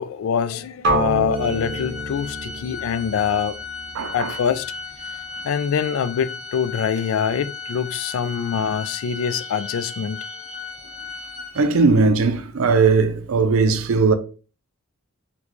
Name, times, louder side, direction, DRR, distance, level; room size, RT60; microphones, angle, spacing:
voice 1, 0.0-3.6 4.1-4.7 5.4-10.3, left 7 dB, 65° left, 0.3 m, -24 dB
sound 1, 0.8-4.8, right 2 dB, 50° right, 1.0 m, -28 dB
Organ, 1.3-12.0, left 4 dB, 25° right, 0.9 m, -36 dB
voice 2, 3.9-4.3 11.5-14.1, right 4 dB, 75° right, 0.5 m, -18 dB
3.9 x 2.3 x 3.0 m
head